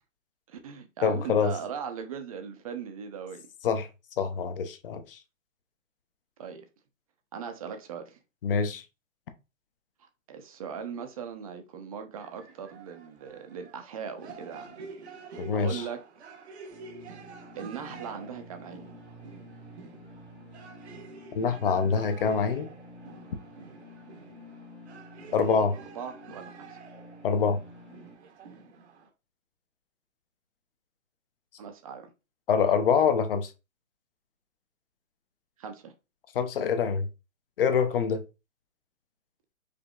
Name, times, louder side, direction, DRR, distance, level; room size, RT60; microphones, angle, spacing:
voice 1, 0.5-3.5 6.4-6.6 7.3-8.2 10.3-14.8 15.3-16.0 17.6-18.8 25.3-25.7 26.0-26.8 31.6-32.1 35.6-35.9, right 7 dB, 30° right, 0.5 m, -39 dB
voice 2, 1.0-1.5 3.6-3.9 4.2-5.2 8.4-8.8 15.4-15.8 21.3-22.7 25.3-25.7 27.2-27.6 32.5-33.5 36.3-37.1 37.6-38.2, left 6 dB, 45° left, 0.7 m, -25 dB
sound 1, 12.2-29.1, right 5 dB, 55° right, 0.9 m, -48 dB
sound 2, 16.7-28.1, left 1 dB, ahead, 0.8 m, -50 dB
5.0 x 2.7 x 2.3 m
hypercardioid pair, 140°, 40 cm